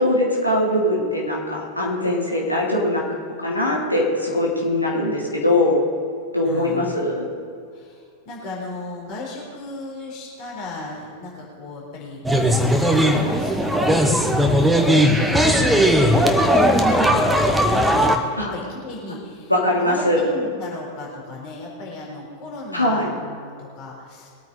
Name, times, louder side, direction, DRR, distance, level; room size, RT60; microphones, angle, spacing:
voice 1, 0.0-3.0 3.4-5.8 6.3-7.3 18.4-18.5 19.5-20.2 22.7-23.0, left 1 dB, 85° left, -3 dB, 3.0 m, -21 dB
voice 2, 6.4-7.1 7.7-14.1 14.7-15.9 16.4-24.3, left 2 dB, 45° left, -3 dB, 4.1 m, -36 dB
sound 1, 12.2-18.2, equal, 5° right, 1.3 m, -17 dB
22.0 x 9.0 x 4.0 m, 2.3 s
figure-of-eight pair, 90°, 0 cm